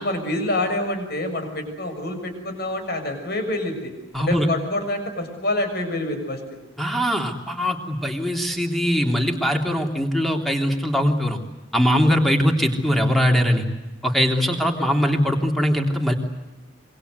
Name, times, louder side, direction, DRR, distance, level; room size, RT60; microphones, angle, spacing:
voice 1, 0.0-3.9 4.2-6.4 14.6-14.9, left 1 dB, 55° left, 6 dB, 6.9 m, -27 dB
voice 2, 4.1-4.5 6.8-11.4 11.7-13.7 14.0-16.1, equal, ahead, 3 dB, 3.3 m, -21 dB
27.0 x 24.0 x 8.2 m, 1.1 s
head